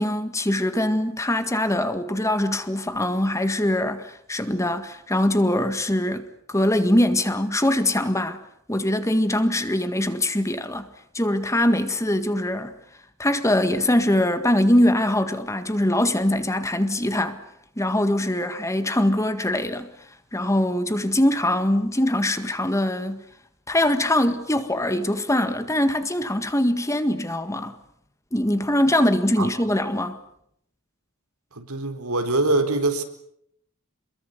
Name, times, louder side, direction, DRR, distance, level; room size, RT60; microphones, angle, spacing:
voice 1, 0.0-8.4 8.7-10.9 11.1-12.7 13.2-17.4 17.8-19.9 20.3-23.2 23.7-27.7 28.3-30.2, left 1 dB, 15° left, 1.8 m, -22 dB
voice 2, 31.5-33.0, right 2 dB, 85° right, 4.4 m, -23 dB
28.0 x 22.5 x 8.2 m
head